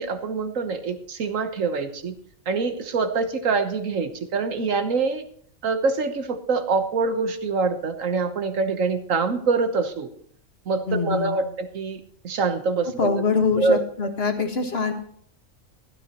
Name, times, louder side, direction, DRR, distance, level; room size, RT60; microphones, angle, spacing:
voice 1, 0.0-2.1 2.5-5.2 5.6-10.1 10.7-13.2 13.5-13.8, right 4 dB, 70° right, 8 dB, 1.5 m, -25 dB
voice 2, 10.9-11.4 13.0-14.9, left 5 dB, 45° left, 5 dB, 1.8 m, -24 dB
15.5 x 13.0 x 3.0 m, 0.62 s
omnidirectional pair, 1.4 m